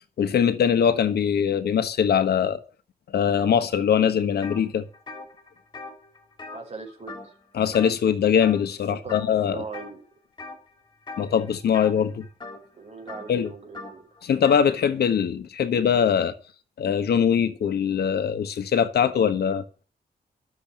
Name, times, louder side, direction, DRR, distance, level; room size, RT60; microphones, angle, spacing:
voice 1, 0.2-2.6 3.1-4.9 7.5-9.6 11.2-12.3 13.3-13.5 14.2-16.3 16.8-19.6, left 8 dB, 80° left, 1.4 m, -22 dB
sound 1, 4.4-4.6 4.9-7.5 7.7-8.1 8.4-8.8 9.1-9.9 10.4-10.7 11.0-14.7, left 3 dB, 25° left, 3.5 m, -41 dB
voice 2, 6.5-7.3 8.8-10.0 12.7-14.1, right 4 dB, 40° right, 5.2 m, -39 dB
12.5 x 7.2 x 8.7 m
wide cardioid pair, 160°, 17 cm